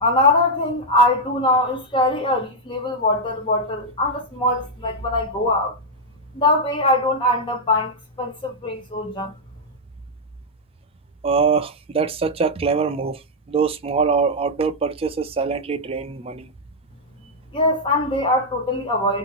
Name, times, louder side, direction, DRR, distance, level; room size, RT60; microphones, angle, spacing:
voice 1, 0.0-5.7 6.4-9.3 17.5-19.2, left 1 dB, 25° left, 0.6 m, -21 dB
voice 2, 11.2-13.2 13.5-16.5, right 5 dB, 25° right, 0.3 m, -22 dB
2.7 x 2.4 x 2.9 m
head